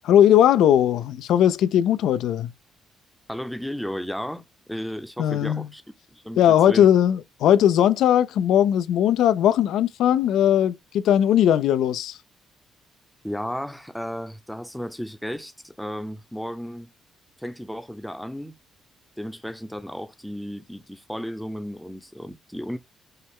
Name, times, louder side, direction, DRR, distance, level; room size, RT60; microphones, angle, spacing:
voice 1, 0.0-2.5 5.2-5.7 6.4-12.2, left 10 dB, 85° left, 0.3 m, -19 dB
voice 2, 3.3-4.4 4.7-5.8 6.1-6.9 13.2-16.9 17.4-18.6 19.2-22.8, equal, ahead, 0.6 m, -34 dB
5.4 x 2.1 x 3.6 m
cardioid pair, 90°, 0 cm